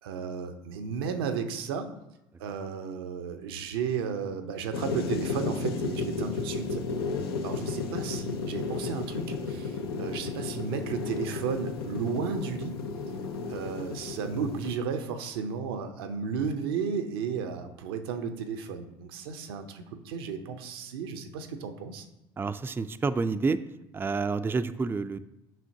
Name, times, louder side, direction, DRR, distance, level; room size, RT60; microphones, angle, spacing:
voice 1, 0.0-1.9 2.4-6.8 7.4-12.8 13.5-22.1, right 6 dB, 80° right, 7 dB, 0.7 m, -33 dB
sound 1, 4.7-14.7, left 4 dB, 90° left, 0.6 m, -33 dB
voice 2, 22.4-23.6 23.9-25.2, right 4 dB, 15° right, 11 dB, 0.4 m, -28 dB
7.5 x 5.6 x 2.7 m, 0.90 s
hypercardioid pair, 65°, 12 cm